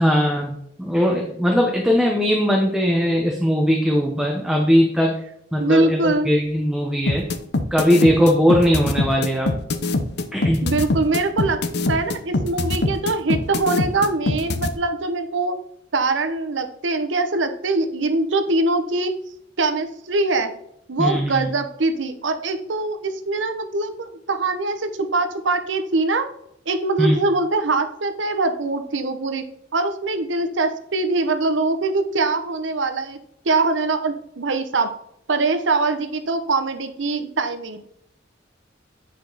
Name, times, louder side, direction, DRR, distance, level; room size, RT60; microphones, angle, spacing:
voice 1, 0.0-5.1 5.5-7.2 7.7-9.5 10.3-10.6 21.0-21.4 27.0-27.2, equal, 5° right, 0 dB, 0.9 m, -19 dB
voice 2, 5.6-6.3 10.6-11.6 11.9-15.5 15.9-19.1 19.6-20.5 20.9-26.3 26.7-29.4 29.7-33.2 33.4-34.9 35.3-37.8, right 3 dB, 85° right, 8 dB, 0.8 m, -23 dB
sound 1, 7.1-14.7, left 2 dB, 60° left, 0.7 m, -22 dB
9.2 x 5.0 x 3.9 m, 0.76 s
head